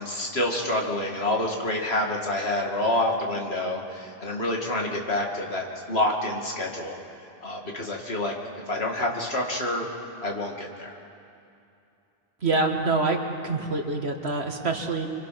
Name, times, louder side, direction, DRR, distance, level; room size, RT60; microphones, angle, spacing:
voice 1, 0.0-7.0 7.4-8.3 8.7-9.9 10.2-10.9, left 1 dB, 80° left, 0 dB, 2.7 m, -27 dB
voice 2, 12.4-15.1, right 3 dB, 90° right, 3 dB, 2.1 m, -26 dB
26.0 x 25.5 x 6.0 m, 2.7 s
omnidirectional pair, 1.1 m